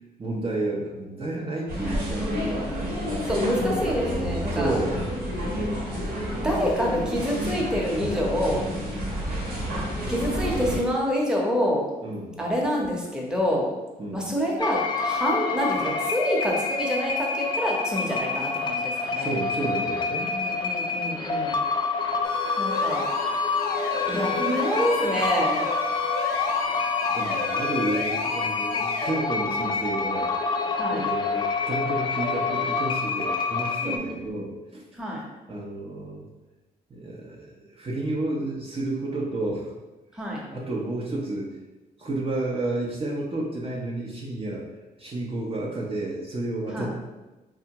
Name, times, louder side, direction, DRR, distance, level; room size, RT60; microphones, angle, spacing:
voice 1, 0.2-2.4 3.0-3.6 4.5-5.0 8.9-9.3 12.0-12.4 14.0-14.3 19.2-20.3 26.2-26.3 27.1-30.3 30.9-35.0 35.5-36.3 36.9-39.7 40.5-41.6 42.0-44.6 45.0-46.9, right 2 dB, 35° right, -4 dB, 0.6 m, -31 dB
sound 1, 1.7-10.8, equal, 75° right, 1.1 m, -29 dB
voice 2, 3.3-4.7 6.4-8.6 10.1-11.9 12.4-13.7 14.1-19.3 20.3-21.6 22.6-23.1 24.1-25.6 30.7-31.1 33.8-34.4 34.9-35.2 40.1-40.4 46.7-46.9, equal, 5° right, -3 dB, 0.8 m, -27 dB
sound 2, 14.6-34.0, left 4 dB, 25° left, 0.4 m, -27 dB
sound 3, 22.2-29.1, left 3 dB, 75° left, 0.6 m, -33 dB
3.4 x 2.1 x 2.8 m, 1.1 s
supercardioid pair, 65°, 17 cm